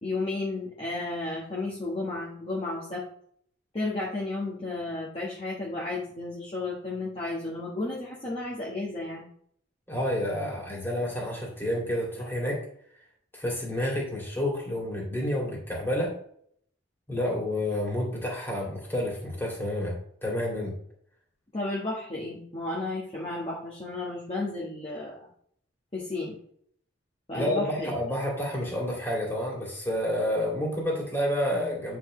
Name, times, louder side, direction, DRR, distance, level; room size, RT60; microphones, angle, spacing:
voice 1, 0.0-3.0 3.7-9.2 21.5-25.3 25.9-26.4 27.3-27.9, left 2 dB, 30° left, -6 dB, 1.4 m, -33 dB
voice 2, 9.9-12.6 13.3-16.1 17.1-19.9 20.2-20.7 27.3-32.0, left 1 dB, 10° left, -3 dB, 2.5 m, -29 dB
8.9 x 5.8 x 3.2 m, 0.64 s
head